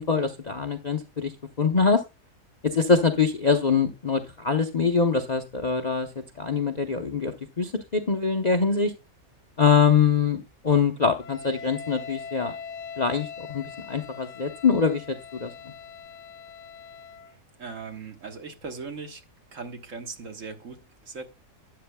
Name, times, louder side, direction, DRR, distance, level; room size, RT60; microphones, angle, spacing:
voice 1, 0.0-1.3 1.6-2.0 2.6-6.1 6.4-8.9 9.6-12.5 13.0-15.7, left 5 dB, 40° left, 0.6 m, -24 dB
Wind instrument woodwind instrument, 11.2-17.3, left 6 dB, 80° left, 1.2 m, -41 dB
voice 2, 17.6-19.2 19.5-21.3, right 4 dB, 55° right, 1.6 m, -39 dB
12.5 x 9.5 x 2.2 m
omnidirectional pair, 1.7 m